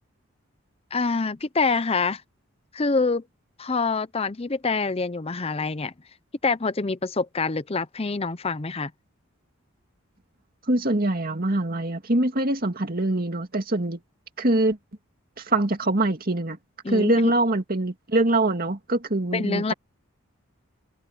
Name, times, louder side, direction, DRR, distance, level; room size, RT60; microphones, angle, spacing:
voice 1, 0.9-2.2 2.7-3.2 3.6-5.9 6.4-8.9 16.8-17.3 19.3-19.7, left 4 dB, 30° left, 0.6 m, -26 dB
voice 2, 10.7-14.0 14.4-14.8 15.4-16.6 16.9-19.7, right 2 dB, 45° right, 2.3 m, -24 dB
head